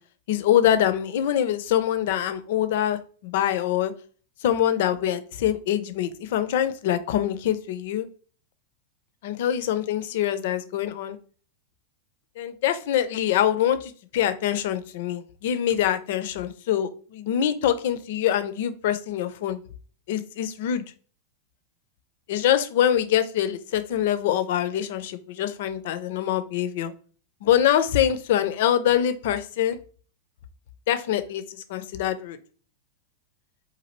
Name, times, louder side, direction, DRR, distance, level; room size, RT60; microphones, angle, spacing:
voice 1, 0.3-3.9 4.4-8.1 9.2-11.2 12.4-19.6 20.1-20.8 22.3-26.9 27.4-29.8 30.9-32.4, left 10 dB, 55° left, 11 dB, 0.4 m, -24 dB
4.0 x 2.5 x 2.9 m, 0.40 s
figure-of-eight pair, 90°, 0 cm